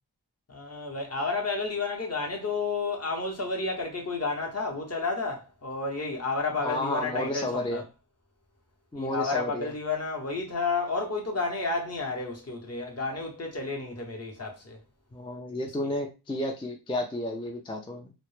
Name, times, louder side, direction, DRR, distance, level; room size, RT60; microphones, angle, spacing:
voice 1, 0.5-7.8 8.9-14.8, left 3 dB, 40° left, 0.8 m, -31 dB
voice 2, 6.6-7.9 8.9-9.7 15.1-18.1, left 1 dB, 15° left, 0.3 m, -32 dB
2.0 x 2.0 x 3.0 m
wide cardioid pair, 65°, 41 cm